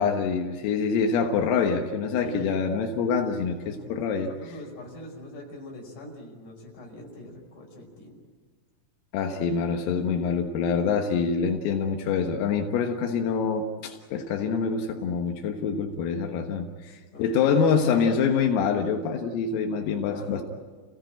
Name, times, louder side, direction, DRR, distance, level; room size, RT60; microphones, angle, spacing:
voice 1, 0.0-4.3 9.1-16.9 17.2-20.4, left 6 dB, 80° left, 3 dB, 4.1 m, -25 dB
voice 2, 2.2-2.6 3.6-8.2 16.8-18.0 20.1-20.4, left 1 dB, 40° left, 0 dB, 6.5 m, -42 dB
30.0 x 17.5 x 9.0 m, 1.5 s
omnidirectional pair, 6.0 m